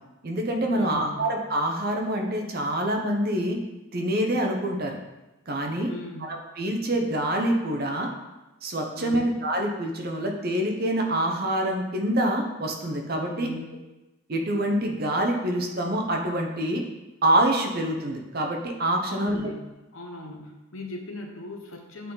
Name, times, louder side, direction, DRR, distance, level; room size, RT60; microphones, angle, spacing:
voice 1, 0.2-3.6 3.9-5.0 5.5-5.9 6.3-8.1 8.6-13.5 14.3-16.8 17.2-19.4, right 1 dB, 45° right, 2 dB, 0.8 m, -26 dB
voice 2, 0.7-1.3 5.9-6.3 8.9-9.4 13.3-13.7 19.1-19.7 19.9-22.1, left 2 dB, 65° left, 2 dB, 1.0 m, -39 dB
8.4 x 3.9 x 3.9 m, 1.0 s
head